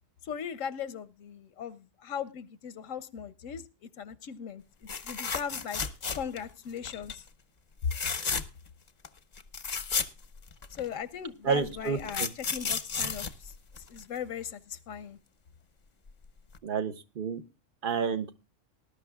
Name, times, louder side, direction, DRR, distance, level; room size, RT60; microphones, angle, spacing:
voice 1, 0.2-3.6 4.0-4.6 5.0-5.8 6.1-7.2 10.7-13.5 13.9-15.2, left 8 dB, 90° left, 15 dB, 1.1 m, -38 dB
sound 1, 4.9-6.5 6.8-7.2 7.8-8.7 9.0-9.1 9.4-10.9 11.6-14.2 16.1-16.2 16.5-16.6, left 5 dB, 40° left, 0.8 m, -33 dB
voice 2, 11.4-12.3 16.6-17.4 17.8-18.3, right 6 dB, 50° right, 10 dB, 0.9 m, -30 dB
19.5 x 11.5 x 2.3 m, 0.28 s
omnidirectional pair, 1.3 m